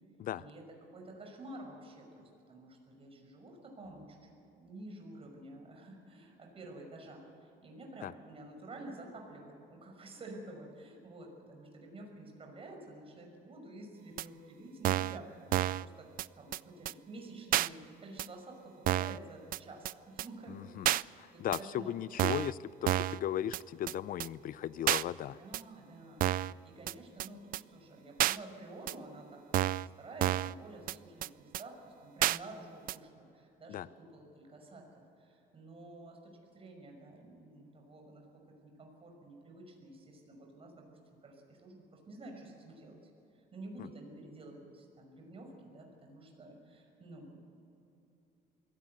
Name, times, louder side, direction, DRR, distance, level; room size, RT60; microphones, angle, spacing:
voice 1, 0.4-16.1 16.4-21.1 21.3-21.9 25.4-38.2 38.6-43.0 43.3-47.5, right 2 dB, 35° right, 2 dB, 5.9 m, -50 dB
sound 1, 14.2-14.3 14.8-15.2 15.5-15.8 16.2-16.3 16.5-16.6 16.9-17.0 17.5-17.7 18.2-18.3 18.9-19.2 19.5-19.6 19.9-20.0 20.2-20.3 20.8-21.0 21.5-21.6 22.2-22.5 22.9-23.2 23.5-23.6 23.9-24.0 24.2-24.3 24.9-25.0 25.5-25.6 26.2-26.5 26.9-27.0 27.2-27.3 27.5-27.6 28.2-28.4 28.9-29.0 29.5-29.9 30.2-30.5 30.9-31.0 31.2-31.3 31.5-31.6 32.2-32.4 32.9-33.0, right 14 dB, 55° right, 0.4 m, -30 dB
voice 2, 20.5-20.9 21.2-25.4 33.7-33.9 43.8-43.9, left 11 dB, 55° left, 18 dB, 0.6 m, -37 dB
23.0 x 16.5 x 8.0 m, 2.9 s
cardioid pair, 110°, 17 cm